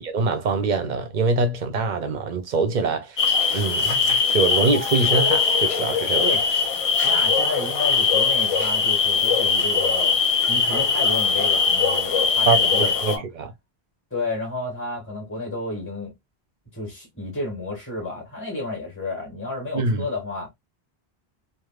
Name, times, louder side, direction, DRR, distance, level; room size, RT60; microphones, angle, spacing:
voice 1, 0.0-3.2 3.5-6.3 12.5-13.5 19.7-20.1, right 4 dB, 55° right, 0.7 m, -24 dB
sound 1, 3.2-13.2, left 5 dB, 45° left, 0.5 m, -21 dB
voice 2, 7.0-10.2 10.5-13.2 14.1-16.1 16.7-20.5, left 2 dB, 10° left, 1.5 m, -31 dB
3.2 x 2.6 x 2.3 m
omnidirectional pair, 1.0 m